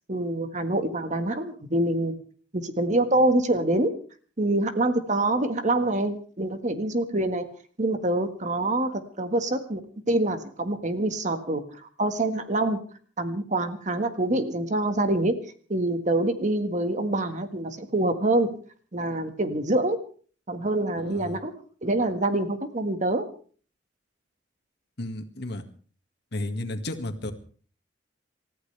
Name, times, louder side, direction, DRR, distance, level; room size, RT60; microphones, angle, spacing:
voice 1, 0.1-2.1 2.5-3.9 4.4-7.4 7.8-9.8 10.1-11.6 12.0-12.8 13.2-15.4 15.7-18.5 18.9-20.0 20.5-21.5 21.8-23.3, right 2 dB, 40° right, 8 dB, 1.7 m, -25 dB
voice 2, 21.0-21.4 25.0-25.6 26.3-27.3, left 1 dB, 60° left, 5 dB, 2.0 m, -33 dB
28.5 x 14.5 x 3.4 m, 0.43 s
head